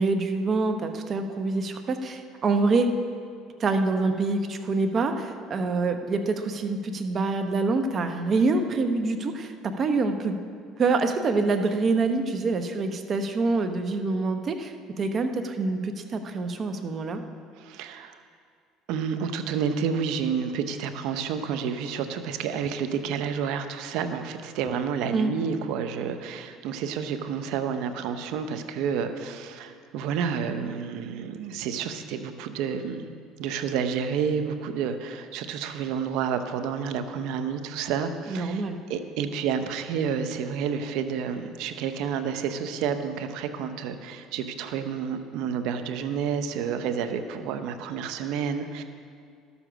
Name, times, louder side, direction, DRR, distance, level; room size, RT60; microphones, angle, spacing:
voice 1, 0.0-2.9 3.6-10.4 10.8-17.2 25.1-25.3 38.3-38.8, right 3 dB, 40° right, 7 dB, 0.9 m, -26 dB
voice 2, 17.6-18.2 18.9-33.1 33.4-38.6 38.9-48.8, right 7 dB, 75° right, 9 dB, 0.8 m, -30 dB
12.5 x 7.1 x 6.1 m, 2.2 s
supercardioid pair, 100°, 0 cm